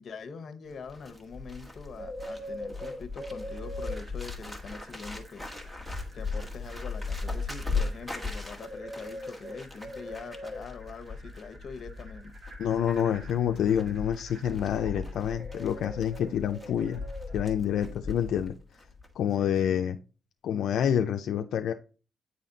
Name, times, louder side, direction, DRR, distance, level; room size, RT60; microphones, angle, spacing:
voice 1, 0.0-5.5 6.1-12.3 19.4-19.8, left 5 dB, 60° left, 1.0 m, -43 dB
Bird, 0.7-18.5 18.8-19.1, left 3 dB, 10° right, 1.6 m, -37 dB
sound 1, 3.9-17.5, right 2 dB, 50° right, 2.7 m, -55 dB
voice 2, 12.6-17.0 17.3-18.5 19.2-20.0 20.4-21.7, left 9 dB, 85° left, 0.4 m, -27 dB
9.0 x 4.2 x 3.9 m
cardioid pair, 85°, 0 cm